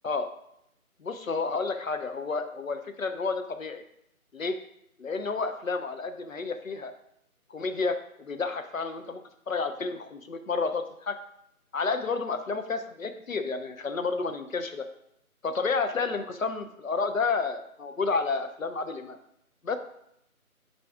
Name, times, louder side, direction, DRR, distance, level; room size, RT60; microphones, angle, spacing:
voice 1, 1.0-3.8 4.3-4.6 5.0-6.9 7.5-9.2 9.5-11.2 11.7-14.9 15.4-19.2 19.6-19.7, left 4 dB, 65° left, 7 dB, 0.7 m, -30 dB
9.8 x 4.2 x 2.3 m, 0.77 s
figure-of-eight pair, 165°, 44 cm